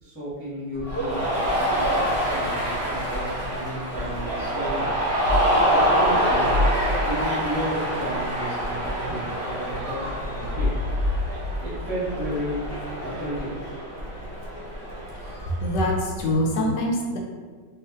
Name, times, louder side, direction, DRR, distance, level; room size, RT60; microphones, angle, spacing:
voice 1, 0.0-1.2 1.5-4.9 5.7-6.5 7.0-10.7 11.6-12.6 13.0-13.5, equal, 5° left, -12 dB, 0.9 m, -33 dB
Writing, 0.7-16.3, equal, 60° right, 0.7 m, -39 dB
Cheering, 0.8-15.7, equal, 20° right, 0.4 m, -26 dB
sound 1, 5.2-5.8 6.4-7.2 10.0-12.6, left 1 dB, 85° right, 1.4 m, -27 dB
voice 2, 15.4-17.2, left 1 dB, 75° left, 0 dB, 1.2 m, -24 dB
4.6 x 2.6 x 2.5 m, 1.5 s
omnidirectional pair, 2.0 m